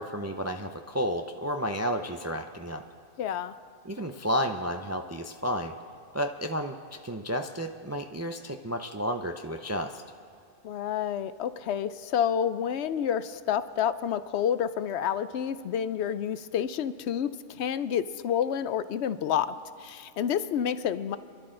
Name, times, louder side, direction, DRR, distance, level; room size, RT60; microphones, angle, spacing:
voice 1, 0.0-2.8 3.8-5.7 6.1-6.8 7.0-10.0, equal, 25° right, 5 dB, 0.3 m, -31 dB
voice 2, 3.2-3.5 10.6-21.2, left 9 dB, 70° left, 14 dB, 0.8 m, -29 dB
28.0 x 11.5 x 3.8 m, 2.3 s
omnidirectional pair, 1.2 m